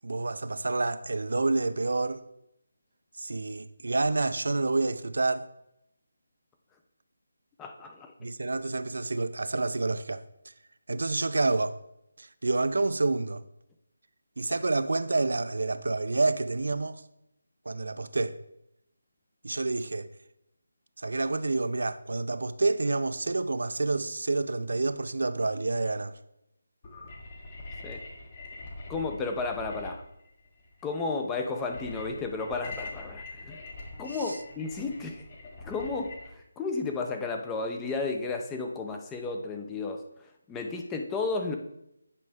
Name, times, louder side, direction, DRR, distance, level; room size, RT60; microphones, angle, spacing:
voice 1, 0.0-2.2 3.2-5.5 8.2-10.2 10.9-11.8 12.2-13.4 14.4-17.0 17.7-18.4 19.4-20.1 21.0-26.1 34.2-34.4, right 3 dB, 70° right, 0.4 m, -28 dB
voice 2, 7.6-8.3 27.8-28.0 28.9-30.0 30.8-33.6 34.0-35.2 35.6-41.6, left 3 dB, 10° left, 0.5 m, -33 dB
sound 1, 26.8-36.3, left 2 dB, 35° left, 1.4 m, -43 dB
8.2 x 5.1 x 3.5 m
figure-of-eight pair, 160°, 0 cm